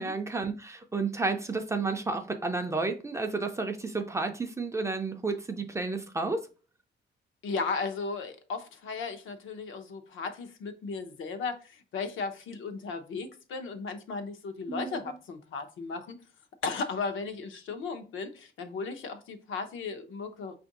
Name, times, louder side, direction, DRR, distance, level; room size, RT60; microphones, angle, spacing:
voice 1, 0.0-6.4 14.7-15.0, right 3 dB, 15° right, 0.3 m, -31 dB
voice 2, 7.4-16.1 16.6-20.6, left 4 dB, 80° left, 0.7 m, -35 dB
5.1 x 2.5 x 3.8 m
wide cardioid pair, 180°, 20 cm